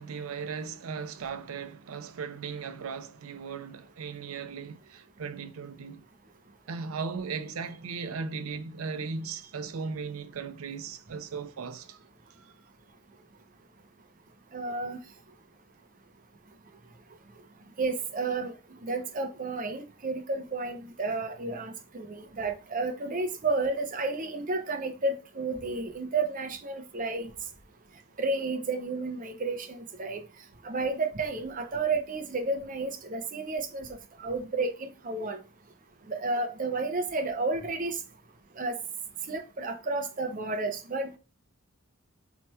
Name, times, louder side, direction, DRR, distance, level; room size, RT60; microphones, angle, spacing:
voice 1, 0.0-6.0 6.7-12.0, right 5 dB, 90° right, 0.5 m, -37 dB
voice 2, 14.5-15.0 17.8-18.5 18.8-27.3 28.2-30.2 30.6-33.9 34.2-35.4 36.1-38.0 38.6-38.8 39.3-41.2, right 3 dB, 40° right, 0.6 m, -31 dB
4.4 x 2.9 x 2.2 m
head